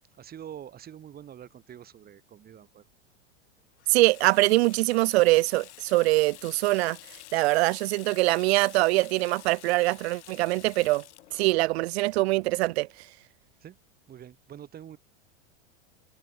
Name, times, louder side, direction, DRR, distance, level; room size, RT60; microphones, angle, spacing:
voice 1, 0.1-2.9 13.6-13.8 14.1-15.0, right 10 dB, 25° right, 3.5 m, -45 dB
Water tap faucet / Sink (filling or washing), 3.8-13.1, left 16 dB, 70° left, 2.5 m, -50 dB
voice 2, 3.9-7.0 7.3-11.0 11.3-12.9, right 21 dB, 60° right, 0.5 m, -23 dB
supercardioid pair, 130°, 36 cm